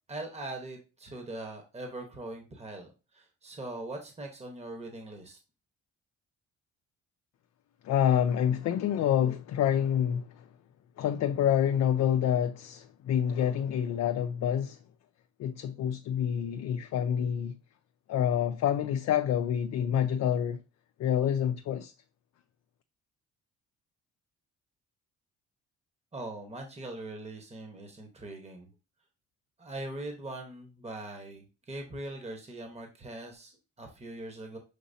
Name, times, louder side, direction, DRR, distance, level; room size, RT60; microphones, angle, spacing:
voice 1, 0.1-5.4 26.1-28.7 29.6-34.6, right 2 dB, 20° right, 1.1 m, -41 dB
voice 2, 7.8-10.5 11.0-14.8 15.4-17.6 18.1-20.6 21.0-21.9, left 9 dB, 60° left, 0.4 m, -27 dB
6.5 x 2.9 x 2.7 m
cardioid pair, 90°, 30 cm